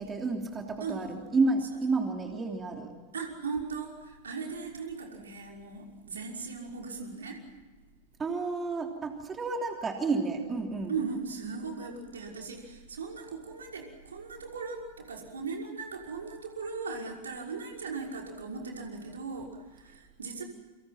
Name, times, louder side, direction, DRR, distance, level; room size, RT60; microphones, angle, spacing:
voice 1, 0.0-2.9 8.2-11.0, right 3 dB, 20° right, 3 dB, 3.2 m, -30 dB
voice 2, 0.8-1.2 1.6-1.9 3.1-7.4 10.3-10.5 10.9-20.4, right 4 dB, 70° right, 1 dB, 5.7 m, -38 dB
30.0 x 25.5 x 6.0 m, 1.4 s
figure-of-eight pair, 90°, 0 cm